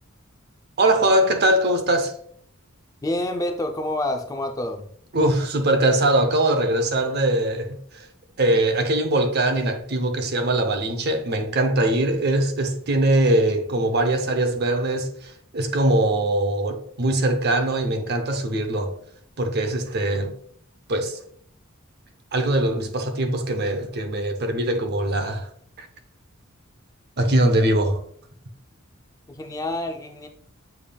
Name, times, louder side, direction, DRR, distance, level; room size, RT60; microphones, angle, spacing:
voice 1, 0.8-2.1 5.1-8.1 8.4-19.0 19.4-20.3 20.9-21.2 22.3-25.5 25.8-25.9 27.2-28.0, right 1 dB, 50° right, 0.6 m, -22 dB
voice 2, 3.0-4.9 29.3-30.3, left 1 dB, 15° left, 0.4 m, -28 dB
6.9 x 3.4 x 2.2 m
head